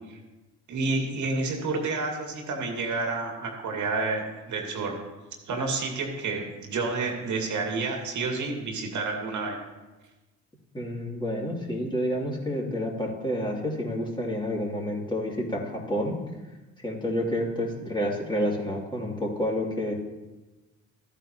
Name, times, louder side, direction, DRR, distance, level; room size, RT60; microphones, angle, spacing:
voice 1, 0.7-5.0 5.5-9.6, right 3 dB, 50° right, 1 dB, 2.3 m, -29 dB
voice 2, 10.7-16.2 16.8-19.9, equal, 10° left, -2 dB, 2.9 m, -29 dB
13.5 x 8.9 x 3.0 m, 1.1 s
hypercardioid pair, 55°, 36 cm